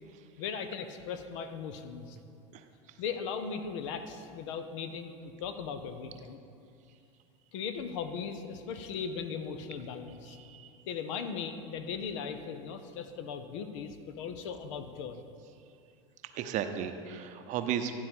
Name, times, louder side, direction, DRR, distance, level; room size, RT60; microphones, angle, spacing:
voice 1, 0.4-2.2 3.0-6.4 7.5-10.4 10.9-15.2, left 6 dB, 70° left, 8 dB, 0.7 m, -38 dB
voice 2, 10.3-10.7 16.3-17.9, right 9 dB, 50° right, 8 dB, 0.7 m, -34 dB
11.5 x 4.0 x 6.1 m, 2.4 s
hypercardioid pair, 85°, 16 cm